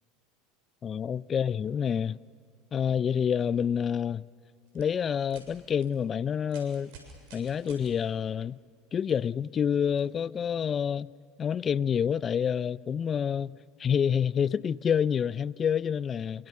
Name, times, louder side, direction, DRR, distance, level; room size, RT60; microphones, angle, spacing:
voice 1, 0.8-2.2 2.7-4.2 4.7-6.9 7.3-8.6 8.9-11.1 11.4-16.5, left 8 dB, 35° left, 0.5 m, -28 dB
sound 1, 4.7-4.8 5.3-5.4 5.8-5.9 6.4-7.9 9.1-9.2 10.0-10.1, right 5 dB, 70° right, 7.4 m, -50 dB
27.5 x 25.0 x 6.8 m
hypercardioid pair, 90°, 0 cm